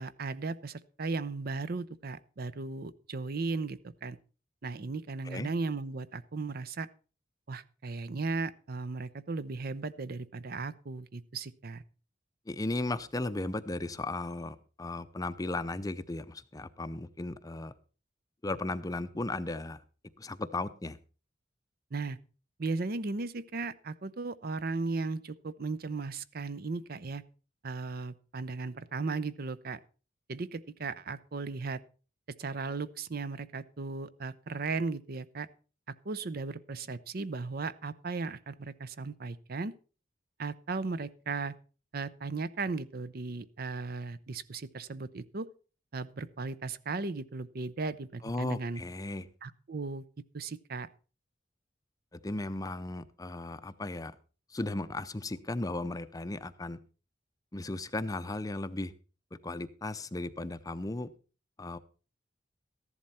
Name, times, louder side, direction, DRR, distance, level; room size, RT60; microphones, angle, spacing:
voice 1, 0.0-4.2 4.6-6.9 7.5-11.8 21.9-22.2 22.6-27.2 27.6-29.8 30.3-31.8 32.4-35.5 36.0-39.7 40.4-41.5 41.9-45.5 45.9-48.8 49.4-50.0 50.3-50.9, right 3 dB, 55° right, 15 dB, 0.6 m, -36 dB
voice 2, 12.5-17.7 18.4-19.8 20.2-21.0 48.2-49.3 52.1-54.2 54.5-56.8 57.5-58.9 59.3-61.1 61.6-61.8, left 2 dB, 20° left, 13 dB, 0.6 m, -36 dB
14.0 x 11.0 x 4.2 m, 0.36 s
head